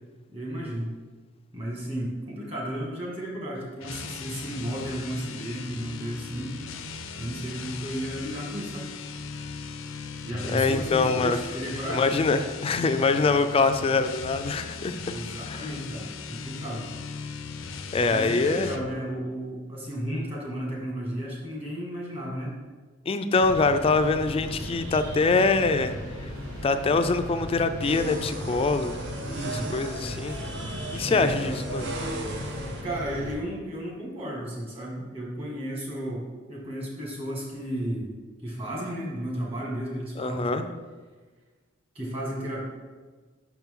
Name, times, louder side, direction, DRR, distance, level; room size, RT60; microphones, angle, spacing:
voice 1, 0.3-0.9 1.5-6.6 7.2-8.9 10.2-12.1 15.1-16.9 18.0-22.5 29.2-29.7 31.1-31.6 32.8-38.1 38.4-40.6 42.0-42.7, right 1 dB, 30° right, -3 dB, 1.7 m, -33 dB
sound 1, 3.8-18.9, left 5 dB, 85° left, 0.5 m, -38 dB
voice 2, 10.5-11.4 11.9-14.9 15.5-15.6 17.9-18.7 23.1-25.9 26.6-29.0 29.5-30.4 30.9-31.9 40.2-40.7, left 3 dB, 30° left, 9 dB, 0.3 m, -24 dB
sound 2, 23.3-33.3, equal, 80° right, 2.1 m, -36 dB
sound 3, 27.8-32.8, right 2 dB, 60° right, 0.7 m, -37 dB
6.1 x 5.9 x 3.7 m, 1.4 s
head